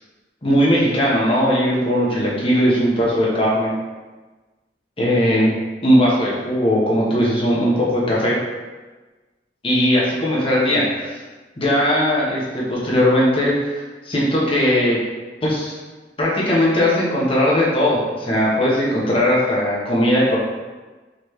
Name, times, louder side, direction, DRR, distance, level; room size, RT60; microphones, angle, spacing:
voice 1, 0.4-3.7 5.0-5.5 5.8-8.4 9.6-11.2 11.6-15.0 15.4-15.8 16.2-20.4, equal, 30° left, -6 dB, 1.0 m, -18 dB
4.0 x 3.1 x 3.2 m, 1.3 s
head